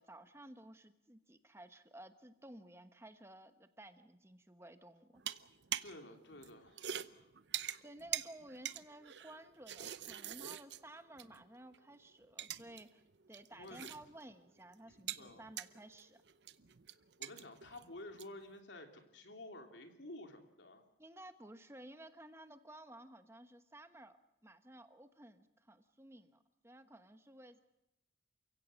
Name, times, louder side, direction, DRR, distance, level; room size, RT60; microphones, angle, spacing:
voice 1, 0.0-5.2 7.8-13.0 13.3-16.2 21.0-27.6, right 1 dB, 15° right, 9 dB, 1.1 m, -55 dB
sound 1, 5.1-6.0 6.3-11.4 11.7-11.8 12.2-12.8 13.1-14.3 14.6-18.4, right 10 dB, 70° right, 0.8 m, -45 dB
voice 2, 5.8-7.3 13.5-13.9 15.2-15.5 17.2-20.8, left 1 dB, 85° left, 5 dB, 3.0 m, -52 dB
29.0 x 16.5 x 7.5 m, 0.88 s
head